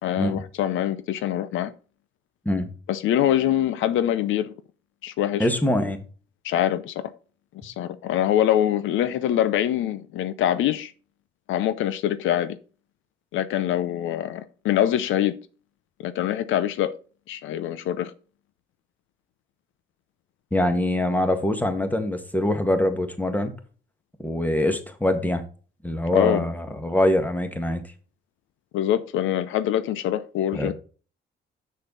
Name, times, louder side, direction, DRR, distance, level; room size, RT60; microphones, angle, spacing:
voice 1, 0.0-1.7 2.9-4.5 5.0-5.5 6.4-7.1 7.6-10.9 11.5-12.6 13.3-15.3 16.0-16.9 17.3-18.1 26.1-26.4 28.7-30.7, left 11 dB, 85° left, 0.7 m, -24 dB
voice 2, 5.4-6.0 20.5-23.5 24.2-25.4 25.8-27.8 30.5-30.7, left 1 dB, 10° left, 1.7 m, -24 dB
6.7 x 6.5 x 4.0 m
cardioid pair, 90°, 20 cm